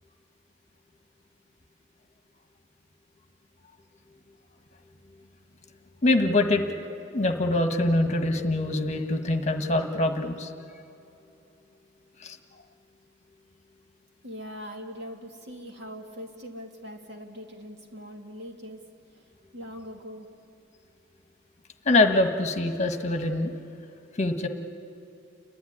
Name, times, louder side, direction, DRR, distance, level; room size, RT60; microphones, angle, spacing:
voice 1, 6.0-6.8 7.1-10.5 12.2-12.4 21.8-23.5 24.2-24.5, left 2 dB, 35° left, 6 dB, 1.4 m, -24 dB
voice 2, 14.2-18.8 19.5-20.3, equal, 60° right, 2 dB, 2.4 m, -41 dB
30.0 x 11.5 x 9.9 m, 2.8 s
head